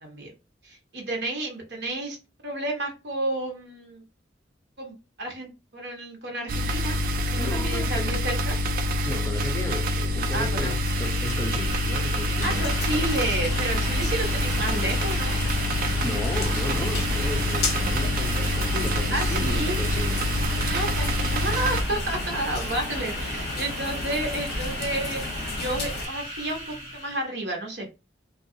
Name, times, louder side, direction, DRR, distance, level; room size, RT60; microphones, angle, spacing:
voice 1, 0.0-0.3 0.6-2.2 2.4-4.0 4.8-6.9 7.3-8.5 10.3-10.8 12.4-15.4 19.1-19.8 20.6-27.9, right 1 dB, 65° right, 0.9 m, -31 dB
sound 1, 6.5-21.8, equal, 50° right, 0.3 m, -26 dB
voice 2, 7.4-8.1 9.1-13.0 16.0-20.3, left 1 dB, 15° left, 0.5 m, -34 dB
sound 2, 10.4-27.3, right 1 dB, 35° right, 1.4 m, -37 dB
sound 3, 12.4-26.1, left 2 dB, 60° left, 0.7 m, -33 dB
2.7 x 2.2 x 2.6 m
head